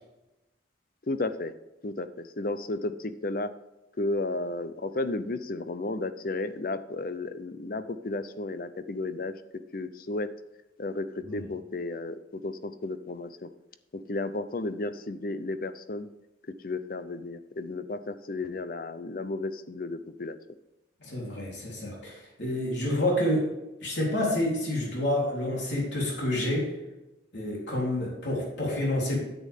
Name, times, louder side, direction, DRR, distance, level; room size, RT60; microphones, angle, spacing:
voice 1, 1.1-1.5 1.8-3.5 4.0-9.3 9.7-10.3 10.8-13.5 13.9-16.1 16.6-20.4, left 2 dB, 50° left, 12 dB, 0.6 m, -33 dB
voice 2, 21.0-23.5 23.8-26.7 27.3-29.2, left 1 dB, 70° left, -3 dB, 3.5 m, -28 dB
9.8 x 8.4 x 3.6 m, 1.0 s
head